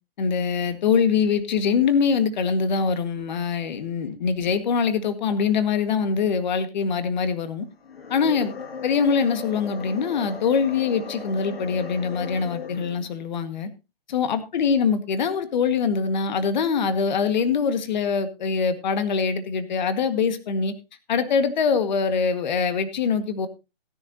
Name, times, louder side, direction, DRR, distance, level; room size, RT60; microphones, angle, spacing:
voice 1, 0.2-7.7 8.1-8.5 8.8-13.7 14.1-20.7 21.1-23.5, left 6 dB, 50° left, 1.8 m, -23 dB
sound 1, 7.8-13.1, left 5 dB, 70° left, 2.4 m, -37 dB
18.0 x 10.0 x 2.9 m
hypercardioid pair, 155°, 30 cm